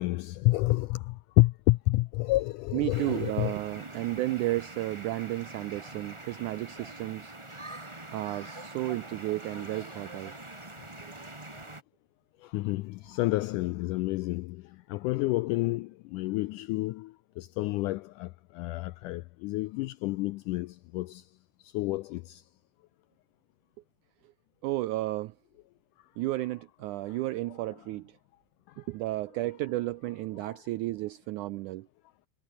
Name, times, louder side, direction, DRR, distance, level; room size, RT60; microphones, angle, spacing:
voice 1, 0.0-3.5 12.4-14.6 14.9-21.2 21.7-22.4 30.5-30.6, left 20 dB, 85° left, 1.8 m, -29 dB
voice 2, 2.7-7.4 8.1-10.4 11.0-11.1 24.2-24.3 24.6-25.4 26.2-28.2 28.8-31.9, right 17 dB, 90° right, 1.7 m, -33 dB
sound 1, 2.9-11.8, right 2 dB, 10° right, 1.5 m, -44 dB
omnidirectional pair, 4.2 m